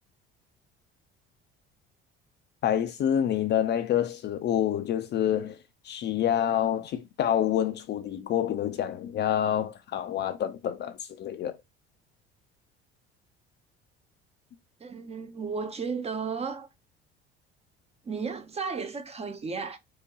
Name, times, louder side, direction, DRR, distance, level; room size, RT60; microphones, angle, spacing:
voice 1, 2.6-5.6 5.8-11.6, left 10 dB, 35° left, 0.5 m, -27 dB
voice 2, 14.8-16.7 18.0-19.8, right 5 dB, 20° right, 0.6 m, -34 dB
4.6 x 2.2 x 2.8 m
figure-of-eight pair, 60°, 31 cm